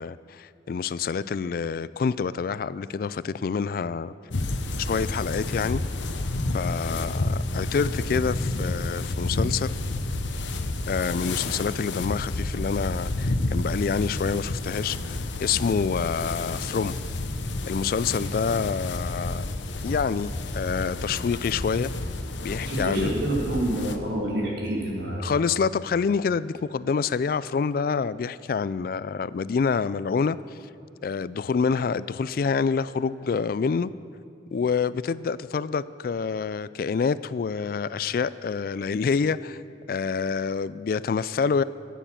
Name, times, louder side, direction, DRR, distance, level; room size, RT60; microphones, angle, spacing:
voice 1, 0.0-4.1 4.8-5.8 6.5-9.7 10.9-17.0 17.6-19.5 19.8-21.9 22.4-23.1 25.2-30.4 31.0-33.9 34.5-39.6 39.9-41.6, left 5 dB, 55° left, 17 dB, 0.3 m, -27 dB
sound 1, 4.3-24.0, left 2 dB, 90° left, 0.9 m, -30 dB
voice 2, 22.6-25.2, right 1 dB, 75° right, -4 dB, 3.7 m, -28 dB
14.5 x 9.2 x 7.4 m, 2.4 s
head